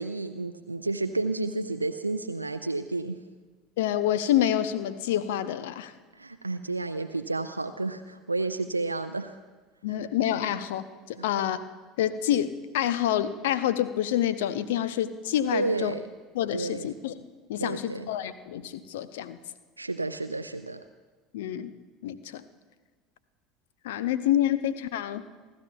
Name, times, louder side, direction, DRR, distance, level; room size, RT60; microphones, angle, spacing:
voice 1, 0.0-3.2 6.2-9.4 11.2-11.3 15.5-16.1 16.5-16.9 17.6-18.1 19.8-20.8, right 3 dB, 85° right, 8 dB, 0.3 m, -31 dB
voice 2, 3.8-5.9 9.8-11.6 12.0-15.9 16.3-17.1 17.5-19.4 21.3-21.7 22.0-22.4 23.8-25.2, left 11 dB, 65° left, 14 dB, 0.6 m, -27 dB
28.5 x 13.0 x 2.3 m, 1.4 s
figure-of-eight pair, 70°, 0 cm